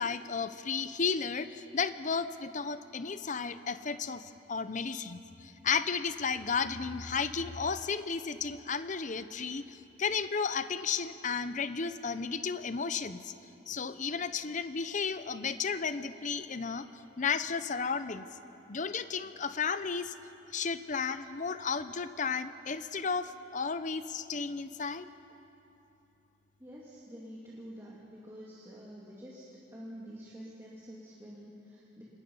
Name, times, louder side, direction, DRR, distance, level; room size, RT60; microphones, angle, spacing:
voice 1, 0.0-13.3 13.7-16.9 17.2-18.2 18.7-20.1 20.5-25.1, left 5 dB, 45° left, 12 dB, 0.7 m, -33 dB
voice 2, 26.6-32.0, equal, 15° right, -6 dB, 2.7 m, -48 dB
26.0 x 21.0 x 5.6 m, 2.9 s
head